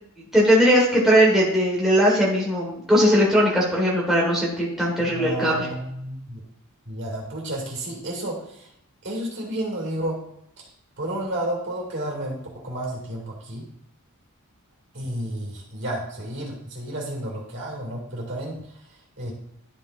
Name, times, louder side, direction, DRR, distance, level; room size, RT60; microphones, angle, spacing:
voice 1, 0.3-5.6, equal, ahead, -5 dB, 1.6 m, -19 dB
voice 2, 5.0-6.4 6.9-8.7 9.0-10.2 10.6-10.7 11.0-13.7 14.9-19.3, right 1 dB, 55° right, -2 dB, 2.4 m, -31 dB
11.5 x 5.4 x 2.6 m, 0.76 s
head